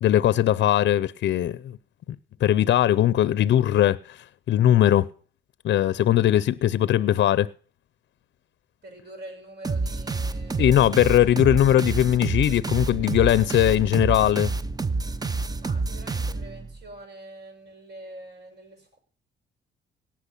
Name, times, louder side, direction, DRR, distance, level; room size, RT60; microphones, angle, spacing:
voice 1, 0.0-1.8 2.4-4.2 4.5-5.1 5.6-7.5 10.6-14.5, left 12 dB, 65° left, 0.6 m, -20 dB
voice 2, 8.8-10.9 15.6-19.0, right 1 dB, 55° right, 7.3 m, -44 dB
sound 1, 9.6-16.8, right 3 dB, 20° right, 0.7 m, -28 dB
17.5 x 6.1 x 8.3 m
cardioid pair, 90°, 20 cm